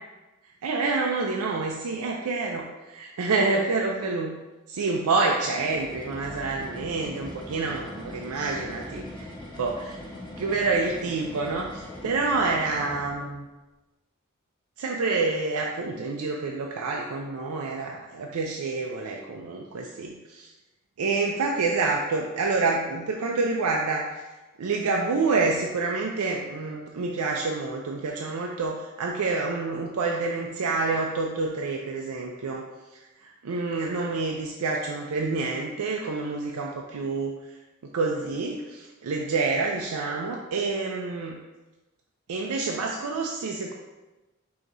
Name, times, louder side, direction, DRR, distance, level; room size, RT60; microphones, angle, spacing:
voice 1, 0.6-4.4 4.7-10.0 10.4-13.5 14.8-20.5 21.0-24.1 24.6-32.7 32.9-37.4 37.9-41.4 42.3-43.7, right 3 dB, 85° right, 0 dB, 0.4 m, -28 dB
sound 1, 5.3-13.4, left 1 dB, 20° left, 0.9 m, -41 dB
4.6 x 2.8 x 3.9 m, 1.1 s
head